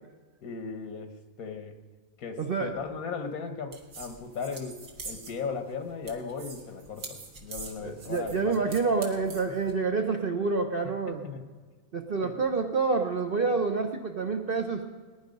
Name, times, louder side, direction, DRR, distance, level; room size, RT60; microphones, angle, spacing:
voice 1, 0.4-1.7 2.2-8.7 11.2-11.4 12.2-12.4, left 5 dB, 80° left, 8 dB, 1.7 m, -37 dB
voice 2, 2.4-2.7 7.8-11.2 11.9-14.9, right 4 dB, 45° right, 6 dB, 0.9 m, -28 dB
sound 1, 3.7-9.7, right 3 dB, 70° right, 2.0 m, -45 dB
19.5 x 10.5 x 5.3 m, 1.5 s
omnidirectional pair, 1.5 m